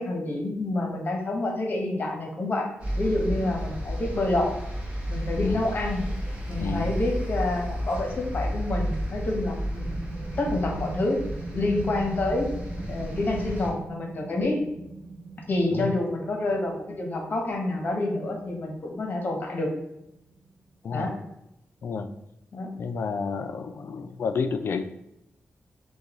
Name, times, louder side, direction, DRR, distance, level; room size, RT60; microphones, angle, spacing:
voice 1, 0.0-2.7 2.9-4.5 5.1-6.0 6.5-10.0 10.4-11.2 11.5-12.5 12.9-14.6 15.5-19.7 20.9-21.1 22.5-22.7, left 2 dB, 45° left, 1 dB, 1.0 m, -28 dB
sound 1, 2.8-13.7, equal, 25° right, 1.1 m, -32 dB
voice 2, 6.6-6.9 15.7-15.9 20.8-21.1 21.8-22.1 22.8-24.8, left 5 dB, 65° left, 8 dB, 0.4 m, -30 dB
sound 2, 9.5-20.7, right 3 dB, 50° right, 0.6 m, -41 dB
6.5 x 2.3 x 3.0 m, 0.82 s
wide cardioid pair, 165°, 4 cm